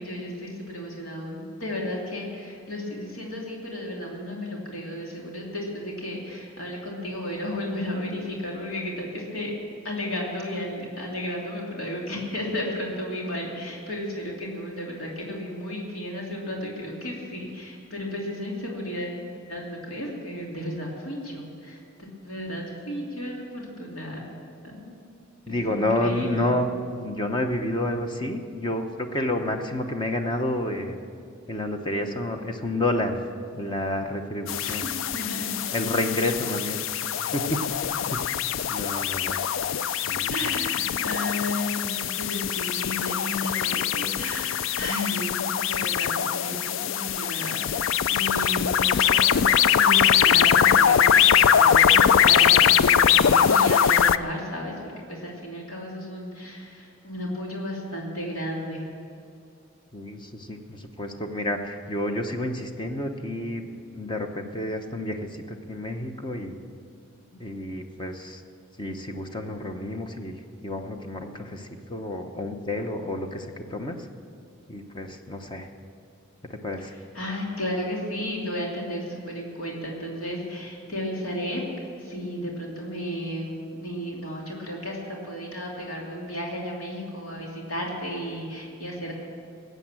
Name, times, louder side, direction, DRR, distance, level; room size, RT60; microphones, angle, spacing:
voice 1, 0.0-9.5 9.8-19.2 19.5-24.2 24.7-24.9 25.4-26.5 34.6-35.6 40.3-45.4 45.7-58.9 76.9-81.6 82.0-89.1, left 1 dB, 90° left, -2 dB, 2.7 m, -33 dB
voice 2, 25.5-26.7 27.0-31.0 31.5-33.2 33.5-34.9 35.7-36.8 37.3-37.6 38.1-38.2 38.7-39.4 40.1-40.5 59.9-66.6 67.3-68.4 68.8-70.4 70.6-73.9 74.7-75.7 76.5-76.9, left 1 dB, 25° left, 5 dB, 0.9 m, -29 dB
sound 1, 34.5-54.2, left 8 dB, 65° left, 0.4 m, -22 dB
19.0 x 8.0 x 7.5 m, 2.4 s
head